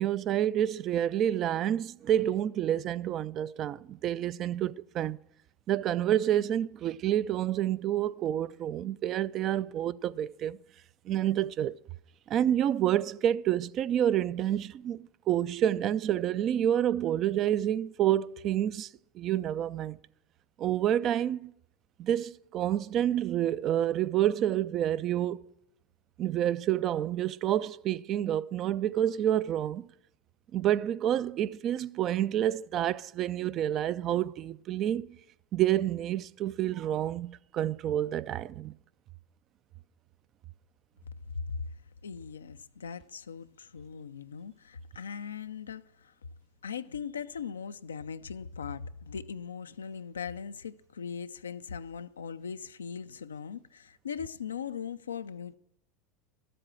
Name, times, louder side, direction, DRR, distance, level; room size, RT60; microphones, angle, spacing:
voice 1, 0.0-5.2 5.7-10.6 11.1-11.8 12.3-18.9 19.1-20.0 20.6-21.5 22.0-25.4 26.2-29.9 30.5-35.2 35.5-38.7, right 11 dB, 45° right, 0.4 m, -28 dB
voice 2, 41.4-41.7 42.0-46.1 46.6-55.6, left 6 dB, 90° left, 0.4 m, -39 dB
13.0 x 7.7 x 6.3 m
hypercardioid pair, 85°, 0 cm